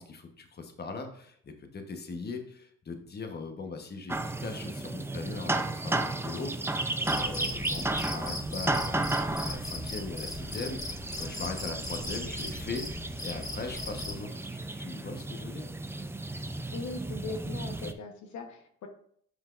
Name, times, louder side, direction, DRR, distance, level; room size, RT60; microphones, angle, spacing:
voice 1, 0.0-15.7, left 4 dB, 35° left, 5 dB, 1.1 m, -40 dB
sound 1, 4.1-17.9, right 2 dB, 10° right, 0.5 m, -34 dB
Cricket, 7.0-14.2, left 1 dB, 15° left, 2.3 m, -39 dB
voice 2, 16.7-18.9, left 3 dB, 70° left, 4 dB, 1.1 m, -40 dB
8.1 x 5.5 x 2.5 m, 0.63 s
cardioid pair, 90°, 30 cm